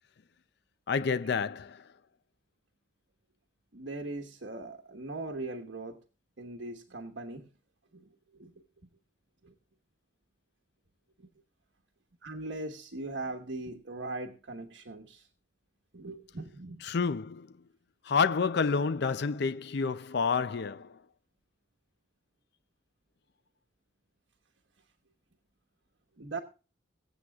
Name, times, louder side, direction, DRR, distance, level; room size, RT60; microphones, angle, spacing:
voice 1, 0.9-1.9 16.8-17.5 18.0-21.0, left 5 dB, 60° left, 0.5 m, -29 dB
voice 2, 3.7-6.0 6.4-7.5 7.9-8.1 8.4-8.5 9.4-9.5 12.2-15.3 15.9-16.8 26.2-26.4, right 2 dB, 75° right, 1.3 m, -40 dB
22.5 x 8.0 x 2.4 m
head